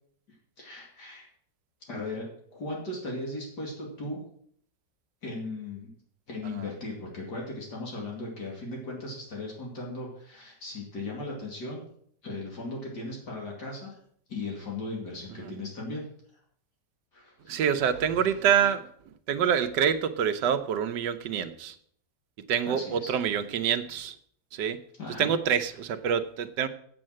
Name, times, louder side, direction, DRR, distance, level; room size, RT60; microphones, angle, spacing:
voice 1, 0.6-1.3 1.9-4.2 5.2-5.9 6.3-11.8 12.2-13.9 14.3-16.0 17.1-17.6 22.7-23.1 25.0-25.3, left 2 dB, 65° left, -2 dB, 3.0 m, -37 dB
voice 2, 17.5-18.9 19.3-21.7 22.5-24.2 24.5-24.8 25.2-26.7, right 8 dB, 75° right, 9 dB, 1.4 m, -26 dB
7.8 x 7.6 x 7.5 m, 0.64 s
omnidirectional pair, 1.9 m